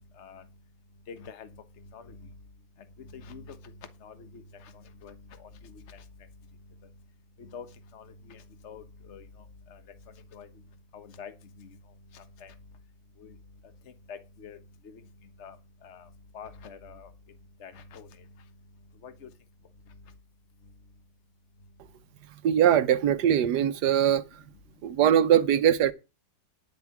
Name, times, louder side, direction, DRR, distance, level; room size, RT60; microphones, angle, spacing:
voice 1, 1.1-1.5 1.9-2.2 3.1-3.6 4.0-6.0 7.4-7.7 7.9-9.2 9.7-9.8 10.3-10.5 10.9-11.3 11.6-11.7 12.1-12.5 13.2-13.3 14.1-14.6 14.8-15.0 15.4-15.6 15.8-16.1 16.3-17.1 17.6-18.1 19.0-19.3, left 5 dB, 45° left, 1.4 m, -46 dB
voice 2, 22.4-24.4 24.8-25.9, right 10 dB, 85° right, 1.4 m, -22 dB
10.5 x 8.0 x 6.0 m
omnidirectional pair, 1.7 m